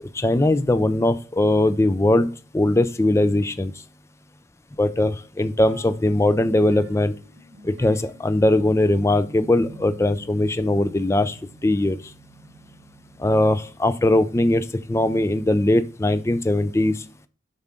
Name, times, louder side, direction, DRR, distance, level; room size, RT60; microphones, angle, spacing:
voice 1, 0.1-2.3 2.5-3.7 4.8-7.1 7.6-11.4 11.6-12.0 13.2-17.0, left 1 dB, 15° left, 13 dB, 0.4 m, -20 dB
sound 1, 5.7-15.4, right 2 dB, 90° right, 1.2 m, -48 dB
7.1 x 5.5 x 3.7 m, 0.39 s
head